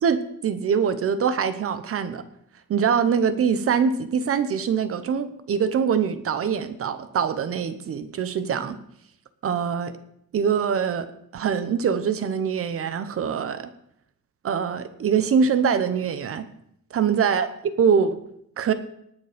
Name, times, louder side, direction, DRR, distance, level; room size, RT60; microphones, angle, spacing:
voice 1, 0.0-2.2 2.7-8.8 9.4-9.9 10.3-11.1 11.3-13.7 14.4-16.4 16.9-17.5 17.8-18.2 18.6-18.7, right 7 dB, 45° right, 12 dB, 0.9 m, -23 dB
19.0 x 6.9 x 5.1 m, 0.72 s
cardioid pair, 165°, 31 cm